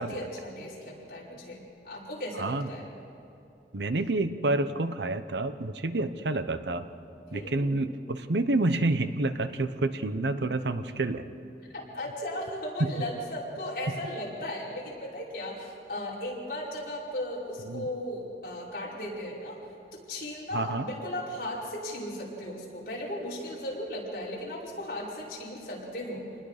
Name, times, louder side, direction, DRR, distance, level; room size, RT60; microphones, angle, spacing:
voice 1, 0.0-2.9 7.3-7.8 11.7-19.6 19.9-26.3, left 1 dB, 55° left, -6 dB, 5.3 m, -36 dB
voice 2, 2.4-2.7 3.7-6.9 7.3-11.2 12.8-12.9 17.6-17.9 20.5-20.9, right 2 dB, 80° right, 11 dB, 0.9 m, -28 dB
27.0 x 20.0 x 5.0 m, 2.8 s
head